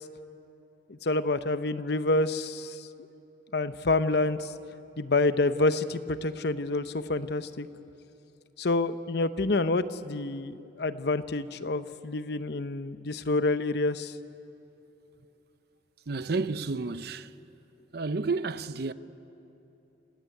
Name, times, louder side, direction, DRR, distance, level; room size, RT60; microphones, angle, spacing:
voice 1, 0.9-2.9 3.5-4.5 5.0-7.7 8.6-14.1, left 2 dB, 65° left, 0.8 m, -28 dB
voice 2, 16.1-17.3 17.9-18.9, right 3 dB, 65° right, 0.7 m, -31 dB
28.0 x 17.0 x 9.5 m
head